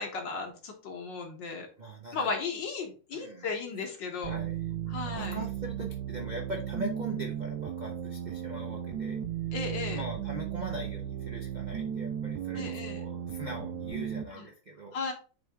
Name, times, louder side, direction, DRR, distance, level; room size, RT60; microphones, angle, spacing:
voice 1, 0.0-1.7 2.1-4.4 4.9-5.4 9.5-10.0 12.6-13.0 14.3-14.4 14.9-15.1, left 4 dB, 65° left, 2 dB, 1.9 m, -35 dB
voice 2, 1.8-2.3 3.1-3.8 4.2-4.7 5.0-9.2 9.9-15.0, right 2 dB, 55° right, 1 dB, 0.5 m, -41 dB
sound 1, 4.2-14.2, right 10 dB, 70° right, 1.3 m, -35 dB
7.5 x 3.5 x 3.6 m, 0.36 s
omnidirectional pair, 2.3 m